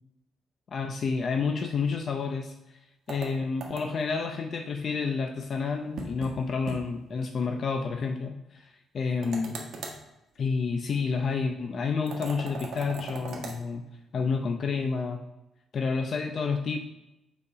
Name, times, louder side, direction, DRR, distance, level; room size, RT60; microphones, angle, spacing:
voice 1, 0.7-2.8 3.1-9.6 10.4-13.8 14.1-15.2 15.7-16.8, left 5 dB, 50° left, 5 dB, 0.5 m, -29 dB
sound 1, 3.1-4.1 6.0-6.4 6.7-6.8 7.1-7.2 9.2-10.0 12.1-13.6, right 3 dB, 70° right, 1.3 m, -38 dB
5.5 x 4.3 x 4.8 m, 0.94 s
cardioid pair, 90°, 0 cm